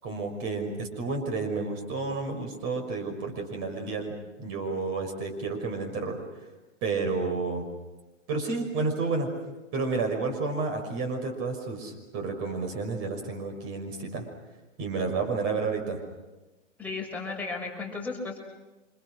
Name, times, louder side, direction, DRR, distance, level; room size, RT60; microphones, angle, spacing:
voice 1, 0.0-4.1 4.4-6.2 6.8-7.6 8.3-9.3 9.7-14.2 14.8-16.0, right 4 dB, 35° right, 3 dB, 5.9 m, -30 dB
voice 2, 16.8-18.4, left 3 dB, 5° left, -2 dB, 5.8 m, -34 dB
29.5 x 27.0 x 6.3 m, 1.1 s
hypercardioid pair, 120°, 38 cm